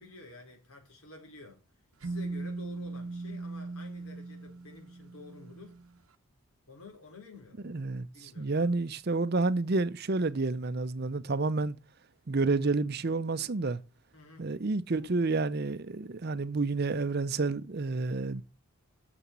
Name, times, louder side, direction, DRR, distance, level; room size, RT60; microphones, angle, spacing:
voice 1, 0.0-1.6 2.0-5.8 6.7-7.6 8.1-8.9 14.1-14.5, left 3 dB, 80° left, 4.5 m, -51 dB
sound 1, 2.0-5.9, right 3 dB, 75° right, 0.8 m, -39 dB
voice 2, 7.6-11.7 12.3-13.8 14.4-18.4, right 3 dB, 45° right, 0.6 m, -30 dB
7.0 x 6.9 x 7.5 m
head